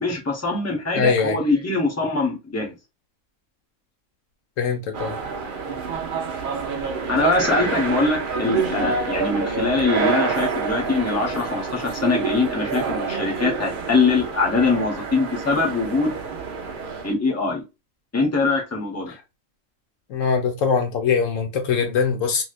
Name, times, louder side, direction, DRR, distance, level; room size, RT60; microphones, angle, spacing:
voice 1, 0.0-2.7 7.1-16.1 17.0-17.6 18.1-19.1, left 3 dB, 15° left, 0.9 m, -23 dB
voice 2, 1.0-1.4 4.6-5.2 20.1-22.4, left 6 dB, 70° left, 1.0 m, -22 dB
sound 1, 4.9-17.1, right 5 dB, 50° right, 0.6 m, -27 dB
3.1 x 2.8 x 2.4 m
omnidirectional pair, 1.5 m